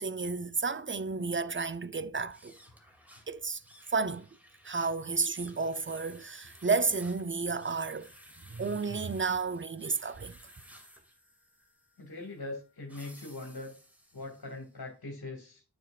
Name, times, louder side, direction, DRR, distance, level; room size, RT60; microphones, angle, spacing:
voice 1, 0.0-2.6 3.3-3.6 3.9-4.3 4.6-8.1 8.5-10.4, right 4 dB, 30° right, 0.7 m, -32 dB
sound 1, 2.3-14.7, equal, 5° right, 2.5 m, -57 dB
voice 2, 12.0-13.7 14.1-15.6, left 2 dB, 65° left, 2.4 m, -41 dB
9.1 x 7.8 x 2.5 m
wide cardioid pair, 50°, 39 cm